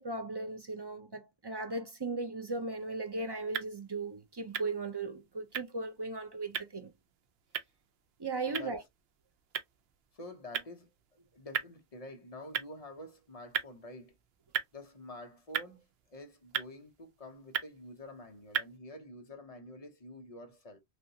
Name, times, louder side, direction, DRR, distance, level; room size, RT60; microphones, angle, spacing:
voice 1, 0.0-6.9 8.2-8.8, right 3 dB, 35° right, 0.4 m, -37 dB
sound 1, 2.7-18.8, right 8 dB, 70° right, 0.8 m, -42 dB
voice 2, 8.4-8.9 10.1-10.9 11.3-14.2 14.7-20.8, left 1 dB, 40° left, 0.8 m, -48 dB
3.3 x 2.8 x 2.6 m
omnidirectional pair, 1.1 m